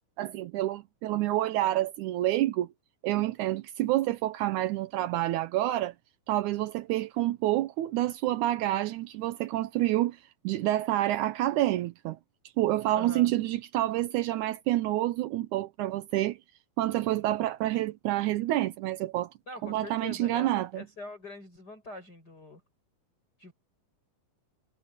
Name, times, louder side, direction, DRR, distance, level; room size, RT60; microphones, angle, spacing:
voice 1, 0.2-2.7 3.0-5.9 6.3-12.2 12.6-16.4 16.8-19.3 19.6-20.8, right 15 dB, 80° right, 1.8 m, -28 dB
voice 2, 12.9-13.4 19.5-22.6 23.4-23.5, left 2 dB, 25° left, 8.5 m, -43 dB
omnidirectional pair, 4.2 m